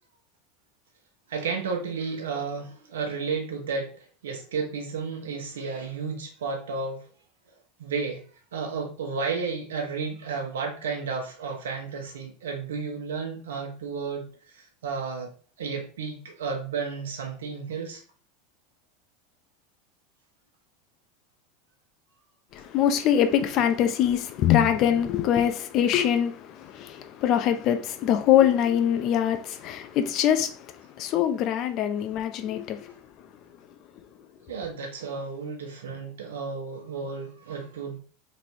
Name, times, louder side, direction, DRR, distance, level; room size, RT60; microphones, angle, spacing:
voice 1, 1.3-7.0 7.8-8.2 8.5-15.3 15.6-18.0 34.5-38.0, right 5 dB, 85° right, 1.0 m, -32 dB
voice 2, 22.5-32.9, left 10 dB, 50° left, 0.6 m, -23 dB
4.1 x 3.3 x 2.8 m
hypercardioid pair, 100°, 0 cm